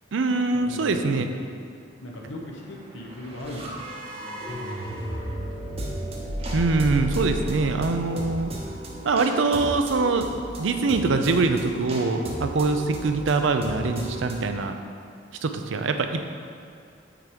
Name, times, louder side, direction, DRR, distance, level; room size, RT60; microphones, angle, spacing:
voice 1, 0.1-1.3 6.5-8.5 9.0-10.3 10.6-14.7 15.4-16.2, right 3 dB, 80° right, 7 dB, 0.5 m, -23 dB
voice 2, 0.6-1.4 2.0-5.4, left 1 dB, 85° left, -1 dB, 1.1 m, -39 dB
sound 1, 2.6-14.5, right 1 dB, 30° right, 0.8 m, -34 dB
5.8 x 4.6 x 5.1 m, 2.4 s
head